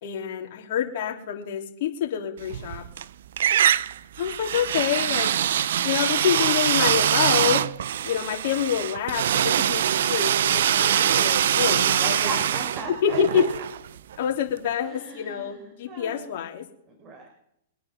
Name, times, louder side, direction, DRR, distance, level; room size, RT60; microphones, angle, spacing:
voice 1, 0.0-2.8 4.2-5.4 5.8-7.6 8.0-12.4 13.0-13.5 14.2-16.6, left 9 dB, 55° left, 1 dB, 3.4 m, -27 dB
sound 1, 2.4-3.0 3.4-14.2, right 10 dB, 70° right, 0.6 m, -23 dB
voice 2, 12.0-13.4 14.8-16.3 17.0-17.3, right 3 dB, 30° right, 1 dB, 4.7 m, -37 dB
25.0 x 9.5 x 3.8 m, 0.73 s
hypercardioid pair, 120°, 0 cm